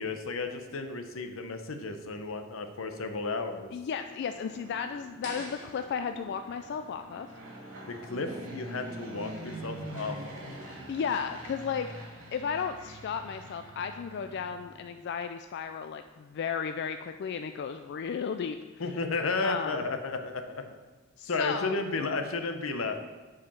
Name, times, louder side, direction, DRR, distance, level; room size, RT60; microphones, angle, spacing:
voice 1, 0.0-3.7 7.9-10.5 18.8-20.6 21.2-23.0, left 3 dB, 85° left, 7 dB, 0.7 m, -33 dB
voice 2, 3.7-7.3 10.9-11.9 12.3-18.8 19.4-19.9 21.2-21.8, left 6 dB, 55° left, 8 dB, 0.3 m, -34 dB
Fixed-wing aircraft airplane, 3.9-15.0, right 1 dB, 70° right, 2.5 m, -45 dB
sound 1, 5.2-8.3, left 2 dB, 40° left, 2.3 m, -48 dB
7.4 x 4.9 x 5.5 m, 1.3 s
head